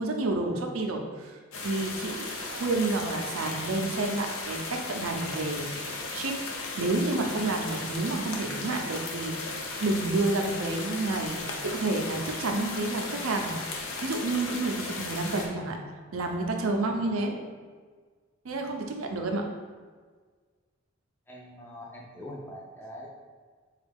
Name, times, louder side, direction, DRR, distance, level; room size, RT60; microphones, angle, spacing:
voice 1, 0.0-6.4 6.8-15.8 16.1-17.4 18.4-19.5, right 2 dB, 85° right, 3 dB, 0.5 m, -30 dB
sound 1, 1.5-15.5, left 3 dB, 75° left, 0.6 m, -36 dB
voice 2, 21.3-23.1, equal, 10° left, -3 dB, 0.5 m, -43 dB
4.3 x 2.3 x 3.4 m, 1.5 s
head